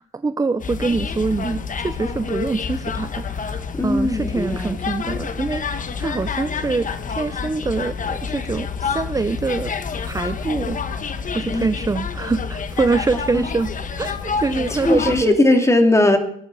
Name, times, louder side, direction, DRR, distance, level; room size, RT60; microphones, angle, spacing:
voice 1, 0.0-9.7 10.1-10.8 11.3-13.7 14.0-15.4, right 3 dB, 15° right, 11 dB, 0.6 m, -24 dB
sound 1, 0.6-15.2, left 5 dB, 40° left, 1.3 m, -28 dB
voice 2, 3.7-4.8 11.5-11.7 13.3-13.4 14.7-16.2, left 1 dB, 15° left, 4 dB, 2.8 m, -18 dB
19.0 x 11.0 x 4.1 m, 0.66 s
cardioid pair, 90°, 20 cm